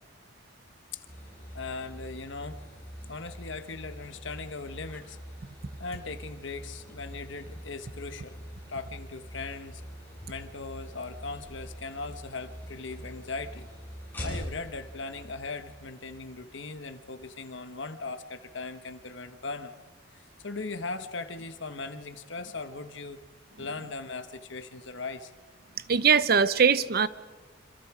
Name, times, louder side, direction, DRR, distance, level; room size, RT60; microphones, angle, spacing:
sound 1, 1.1-16.6, equal, 10° left, 7.8 m, -44 dB
voice 1, 1.5-2.6 3.1-5.2 5.8-8.4 8.7-9.8 10.3-13.7 14.2-19.8 20.1-23.2 23.6-25.3, left 3 dB, 65° left, 9 dB, 1.4 m, -39 dB
voice 2, 25.9-27.1, right 6 dB, 45° right, 15 dB, 0.7 m, -21 dB
27.0 x 26.0 x 5.0 m, 1.4 s
head